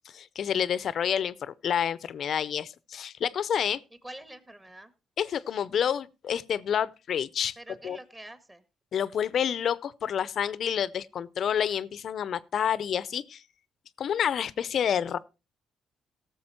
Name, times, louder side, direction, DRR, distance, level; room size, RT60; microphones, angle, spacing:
voice 1, 0.1-3.8 5.2-7.6 7.8-8.0 8.9-13.4 14.0-15.2, left 8 dB, 60° left, 0.6 m, -29 dB
voice 2, 4.0-4.9 7.6-8.6 15.1-15.2, right 1 dB, 15° right, 1.7 m, -46 dB
17.0 x 7.1 x 4.3 m
cardioid pair, 90°, 0 cm